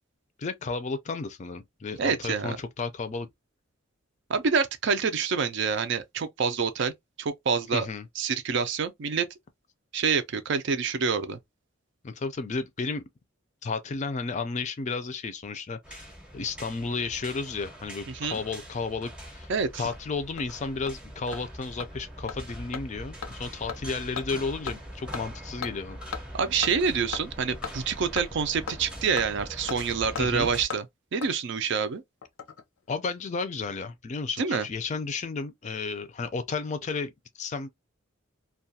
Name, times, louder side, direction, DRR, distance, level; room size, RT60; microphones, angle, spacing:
voice 1, 0.4-3.3 7.7-8.1 12.0-13.1 13.6-19.5 19.8-26.0 30.2-30.5 32.9-37.7, left 4 dB, 35° left, 0.4 m, -33 dB
voice 2, 2.0-2.6 4.3-6.9 7.2-7.9 8.2-9.3 9.9-11.4 18.1-18.4 19.5-19.8 26.3-30.8 31.1-32.0 34.4-34.6, right 5 dB, 60° right, 0.5 m, -27 dB
sound 1, 15.8-30.7, equal, 5° right, 0.7 m, -42 dB
Hammer, 19.4-19.5 19.9-20.0 20.4-20.5 20.9-21.0 21.3-21.4 21.8-21.9 22.3-22.4 22.7-22.8 23.2-23.3 23.7-23.8 24.2-24.3 24.7-24.8 25.1-25.2 25.6-25.7 26.1-26.2 26.6-26.7 27.1-27.2 27.6-27.7 28.2-28.3 28.7-28.8 29.2-29.3 29.7-29.8 30.2-30.3 30.7-30.8 31.2-31.3 32.2-32.6 32.9-33.0, left 6 dB, 85° left, 0.6 m, -35 dB
2.3 x 2.2 x 2.6 m
head